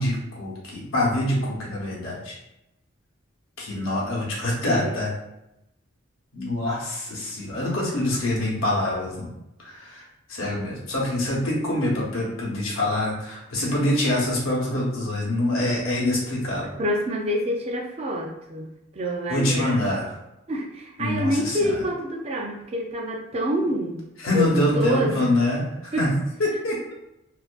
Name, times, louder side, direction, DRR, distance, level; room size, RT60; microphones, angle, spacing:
voice 1, 0.0-2.4 3.6-5.1 6.3-9.3 9.6-10.0 10.3-16.8 19.3-20.2 21.0-21.8 24.2-26.9, left 1 dB, 85° left, -4 dB, 0.8 m, -25 dB
voice 2, 4.6-5.0 16.8-19.9 20.5-24.0 24.3-24.5 24.7-25.3 25.9-26.1, equal, 30° right, 0 dB, 0.4 m, -27 dB
2.4 x 2.2 x 2.4 m, 0.88 s
head